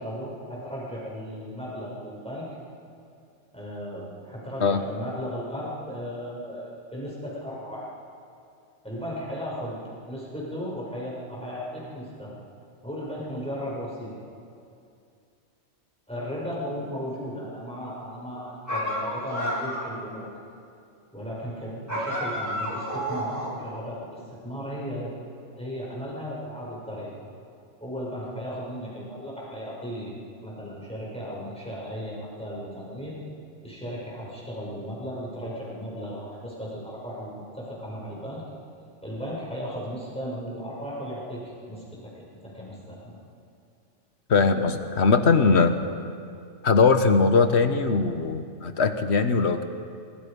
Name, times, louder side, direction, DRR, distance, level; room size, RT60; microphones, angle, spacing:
voice 1, 0.0-2.5 3.5-7.9 8.8-12.3 12.8-14.1 16.1-20.3 21.1-25.1 25.6-27.1 27.8-30.1 30.4-33.2 33.6-38.4 39.0-43.2, equal, 5° left, -6 dB, 7.5 m, -36 dB
sound 1, 18.7-20.0 21.9-23.7, equal, 15° right, 4.2 m, -30 dB
voice 2, 44.3-45.8 46.6-49.6, left 4 dB, 65° left, 8 dB, 1.5 m, -20 dB
26.5 x 24.5 x 5.4 m, 2.4 s
omnidirectional pair, 1.3 m